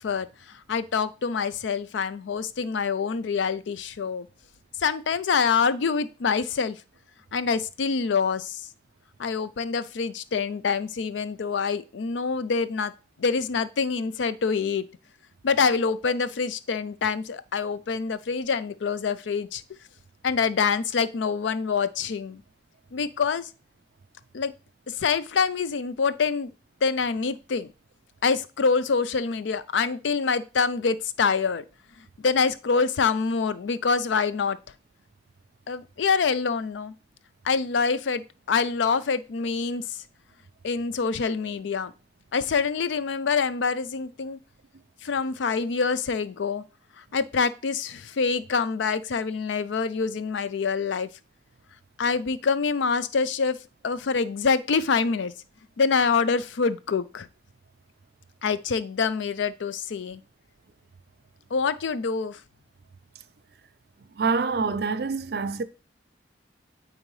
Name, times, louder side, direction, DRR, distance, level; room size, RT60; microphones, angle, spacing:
voice 1, 0.0-4.3 4.8-6.8 7.3-8.6 9.2-12.9 13.2-14.9 15.4-19.6 20.2-22.4 22.9-23.5 24.3-24.5 24.9-26.5 26.8-27.7 28.2-31.6 32.2-34.6 35.7-36.9 37.4-40.0 40.6-41.9 42.3-44.4 45.0-46.6 47.1-51.1 52.0-53.6 53.8-55.3 55.8-57.3 58.4-60.2 61.5-62.4, left 5 dB, 80° left, 0.4 m, -26 dB
voice 2, 64.2-65.6, right 4 dB, 55° right, 0.4 m, -26 dB
8.9 x 3.8 x 3.2 m
head